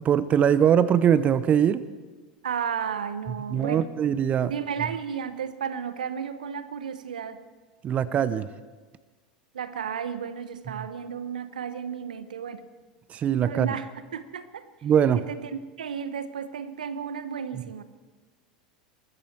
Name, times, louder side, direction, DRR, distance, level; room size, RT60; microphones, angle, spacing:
voice 1, 0.0-1.8 3.5-4.5 7.8-8.5 10.8-10.9 13.1-13.7 14.8-15.2 17.5-17.6, right 9 dB, 35° right, 16 dB, 0.6 m, -22 dB
voice 2, 2.4-3.9 4.5-7.4 9.5-12.6 13.5-14.7 15.3-17.8, right 7 dB, 80° right, 13 dB, 0.9 m, -33 dB
21.5 x 14.0 x 4.5 m, 1.3 s
hypercardioid pair, 90°, 4 cm